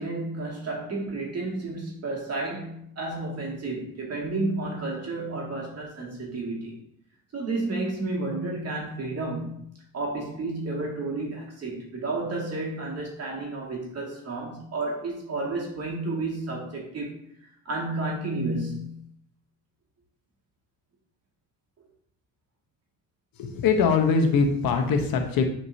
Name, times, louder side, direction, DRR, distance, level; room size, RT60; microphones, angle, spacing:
voice 1, 0.0-6.8 7.3-9.7 9.9-17.2 17.7-19.0, right 2 dB, 45° right, -3 dB, 2.3 m, -31 dB
voice 2, 23.4-25.5, left 5 dB, 70° left, 4 dB, 1.1 m, -22 dB
7.7 x 4.4 x 2.8 m, 0.68 s
cardioid pair, 95°, 36 cm